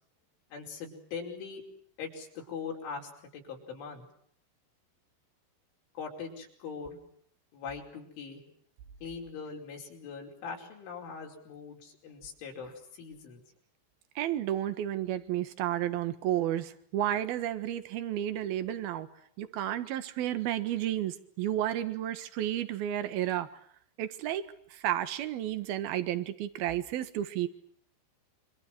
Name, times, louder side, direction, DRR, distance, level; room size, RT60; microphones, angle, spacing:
voice 1, 0.5-1.6 2.0-4.1 6.0-7.0 7.5-8.4 9.0-13.4, left 5 dB, 75° left, 0 dB, 7.6 m, -41 dB
voice 2, 14.2-19.1 19.4-23.5 24.0-27.5, right 12 dB, 65° right, 11 dB, 2.9 m, -32 dB
28.0 x 26.0 x 6.1 m, 0.66 s
omnidirectional pair, 5.6 m